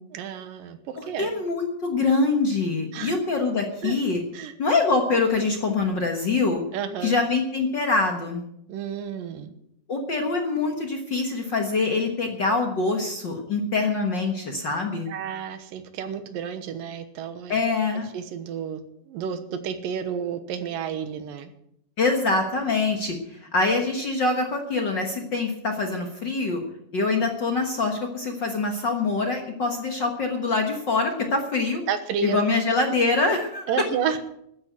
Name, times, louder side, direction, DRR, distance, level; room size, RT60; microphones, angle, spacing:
voice 1, 0.1-1.3 2.9-3.1 3.8-3.9 4.3-4.5 6.7-7.1 8.7-9.5 15.1-17.6 18.1-21.5 31.9-32.6 33.7-34.2, right 7 dB, 90° right, 10 dB, 2.9 m, -31 dB
voice 2, 1.0-4.2 4.6-6.6 7.0-8.4 9.9-15.1 17.5-18.1 22.0-26.6 26.9-31.8 32.2-33.7, left 3 dB, 50° left, 3 dB, 1.4 m, -24 dB
13.0 x 9.9 x 8.0 m, 0.76 s
omnidirectional pair, 3.9 m